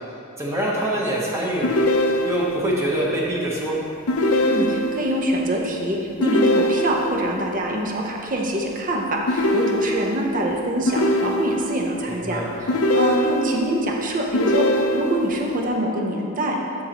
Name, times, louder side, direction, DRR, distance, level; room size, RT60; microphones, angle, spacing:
voice 1, 0.4-1.7 2.2-3.8 12.1-12.6, right 1 dB, 10° right, -5 dB, 1.0 m, -24 dB
sound 1, 1.6-2.7 4.1-5.1 6.2-7.2 9.3-10.3 10.9-11.8 12.7-13.7 14.3-15.3, left 1 dB, 75° left, 0.6 m, -22 dB
voice 2, 4.4-14.7 14.9-16.6, right 1 dB, 35° right, 0 dB, 0.8 m, -24 dB
12.0 x 5.5 x 3.0 m, 2.7 s
head